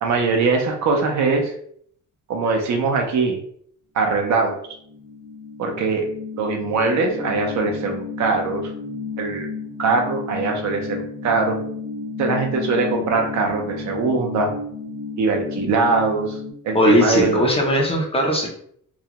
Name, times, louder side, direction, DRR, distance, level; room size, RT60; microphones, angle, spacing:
voice 1, 0.0-1.5 2.3-3.4 3.9-4.6 5.6-6.1 6.4-8.7 9.2-9.5 9.8-11.6 12.2-14.5 15.2-16.4 16.6-17.5, right 4 dB, 60° right, 3 dB, 0.6 m, -21 dB
sound 1, 4.8-16.5, left 4 dB, 25° right, 0.7 m, -32 dB
voice 2, 16.7-18.5, equal, 20° left, -1 dB, 0.4 m, -18 dB
2.4 x 2.1 x 2.8 m, 0.64 s
cardioid pair, 150°, 32 cm